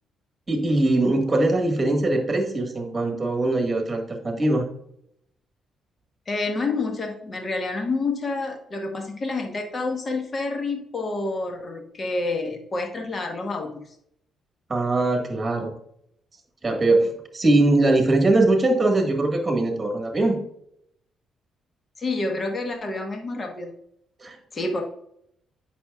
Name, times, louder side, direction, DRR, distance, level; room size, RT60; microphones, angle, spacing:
voice 1, 0.5-4.6 14.7-15.7 16.6-20.4 24.2-24.4, right 2 dB, 25° right, 3 dB, 1.7 m, -21 dB
voice 2, 6.3-13.9 22.0-23.7 24.5-24.8, left 3 dB, 35° left, 3 dB, 1.2 m, -28 dB
8.4 x 6.1 x 2.4 m, 0.72 s
cardioid pair, 90°, 0 cm